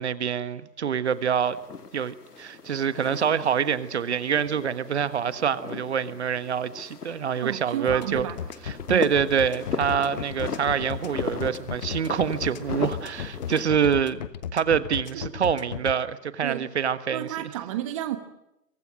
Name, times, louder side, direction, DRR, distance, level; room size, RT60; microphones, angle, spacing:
voice 1, 0.0-1.6 1.9-8.3 8.6-14.2 14.5-17.5, right 7 dB, 40° right, 1.5 m, -26 dB
sound 1, 1.1-13.7, left 5 dB, 70° left, 2.3 m, -37 dB
voice 2, 7.4-8.4 8.9-9.1 15.1-15.4 16.4-16.7 17.1-18.2, right 12 dB, 20° right, 1.2 m, -32 dB
sound 2, 7.9-15.9, left 9 dB, 25° left, 1.1 m, -34 dB
30.0 x 24.0 x 6.4 m
figure-of-eight pair, 140°, 49 cm